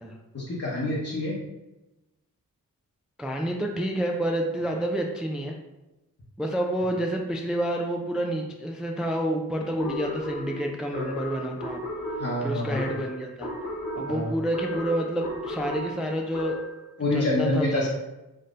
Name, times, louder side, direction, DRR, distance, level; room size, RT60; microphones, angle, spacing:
voice 1, 0.3-1.4 12.2-12.8 14.1-14.3 17.0-17.9, left 2 dB, 40° left, -7 dB, 1.0 m, -27 dB
voice 2, 3.2-5.6 6.4-11.8 12.4-13.5 14.0-16.6 17.1-17.9, right 1 dB, ahead, 1 dB, 0.3 m, -29 dB
sound 1, 9.8-16.8, equal, 60° left, 1.5 m, -34 dB
3.6 x 2.7 x 2.5 m, 1.0 s
cardioid pair, 40°, 38 cm